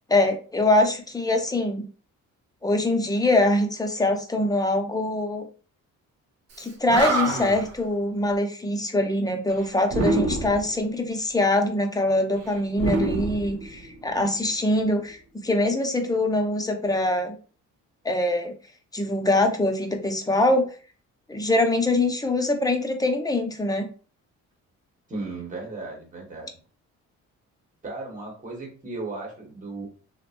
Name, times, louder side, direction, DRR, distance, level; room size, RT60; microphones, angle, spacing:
voice 1, 0.1-1.9 2.6-5.5 6.6-17.4 18.0-18.5 18.9-20.7 21.3-23.9, left 1 dB, 10° left, 4 dB, 0.5 m, -23 dB
Animal, 6.6-6.7 6.9-7.7 9.9-10.7 12.7-14.1, right 2 dB, 55° right, 0.7 m, -26 dB
voice 2, 25.1-26.5 27.8-29.8, right 3 dB, 25° right, -1 dB, 1.2 m, -35 dB
2.9 x 2.0 x 2.5 m, 0.39 s
cardioid pair, 90°, 30 cm